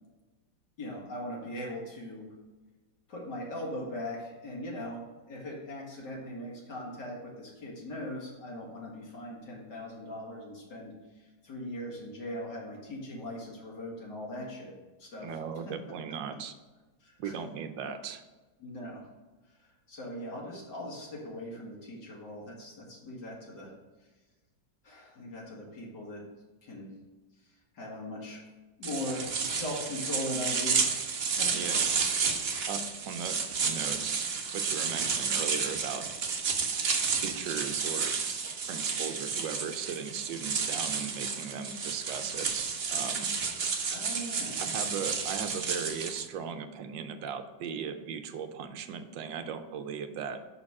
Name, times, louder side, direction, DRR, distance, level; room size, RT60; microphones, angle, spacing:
voice 1, 0.8-2.3 3.1-14.7 15.0-15.4 15.7-15.8 17.0-17.4 18.6-19.1 19.9-23.7 24.8-26.2 26.6-26.9 27.7-28.5 28.8-31.1 31.4-31.7 43.9-44.6 44.9-45.1, left 1 dB, 65° left, -3 dB, 2.4 m, -40 dB
voice 2, 15.2-16.5 17.2-18.2 31.5-31.8 32.7-34.2 34.5-36.1 37.1-38.1 38.7-43.3 44.6-50.4, right 7 dB, 80° right, 8 dB, 1.3 m, -37 dB
sound 1, 28.8-46.3, right 5 dB, 55° right, 0.7 m, -31 dB
6.5 x 5.9 x 4.8 m, 1.2 s
omnidirectional pair, 2.0 m